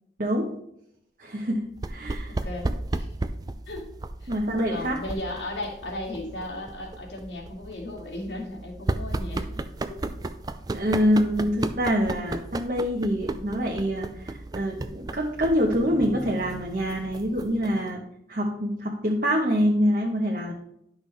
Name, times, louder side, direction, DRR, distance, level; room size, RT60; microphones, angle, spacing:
voice 1, 1.2-2.3 4.3-5.0 10.7-18.0 18.3-20.5, equal, 50° right, -1 dB, 1.0 m, -25 dB
sound 1, 1.8-17.9, right 2 dB, 20° right, 0.4 m, -34 dB
voice 2, 2.3-2.7 2.9-3.1 3.7-3.9 4.2-4.3 4.7-9.5 9.9-10.0, left 1 dB, 80° left, -1 dB, 2.2 m, -35 dB
11.0 x 6.1 x 3.3 m, 0.76 s
head